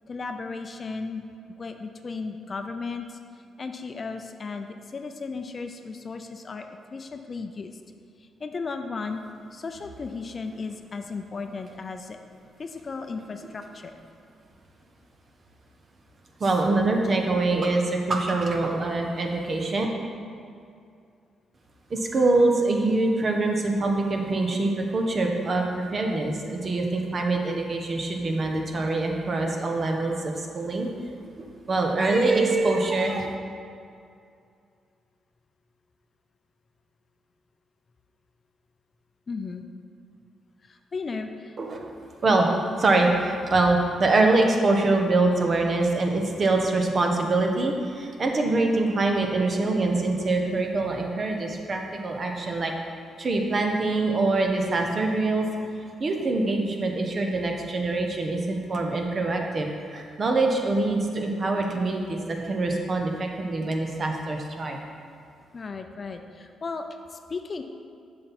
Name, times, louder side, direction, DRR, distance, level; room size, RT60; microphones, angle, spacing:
voice 1, 0.1-1.3 1.6-3.2 3.6-7.8 8.2-9.2 9.5-12.2 12.6-14.0 39.3-39.6 40.6-41.6 65.5-67.6, left 4 dB, 45° left, 6 dB, 0.5 m, -35 dB
voice 2, 16.4-19.9 21.9-30.9 31.7-33.3 41.6-41.9 42.2-42.5 42.8-52.7 53.2-55.5 56.0-62.2 62.4-64.8, right 2 dB, 45° right, 2 dB, 1.0 m, -24 dB
7.5 x 5.8 x 4.3 m, 2.4 s
cardioid pair, 70°, 0 cm